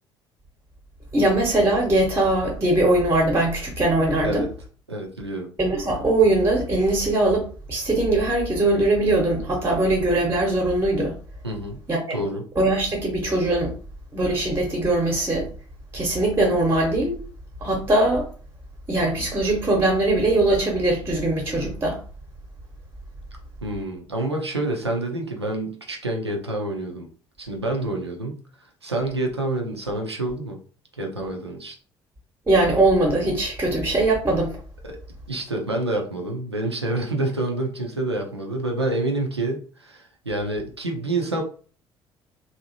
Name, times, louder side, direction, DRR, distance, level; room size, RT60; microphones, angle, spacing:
voice 1, 1.1-4.5 5.6-11.2 11.9-12.0 12.6-13.7 14.1-15.5 15.9-17.2 17.6-18.3 18.9-22.0 32.5-34.6, right 2 dB, 20° right, 0.8 m, -21 dB
voice 2, 4.9-5.5 11.4-11.8 12.1-12.4 23.6-27.1 27.4-28.4 28.8-30.6 31.0-31.8 34.8-35.0 35.3-41.4, right 2 dB, 90° right, 0.4 m, -27 dB
2.6 x 2.0 x 2.7 m
figure-of-eight pair, 50°, 13 cm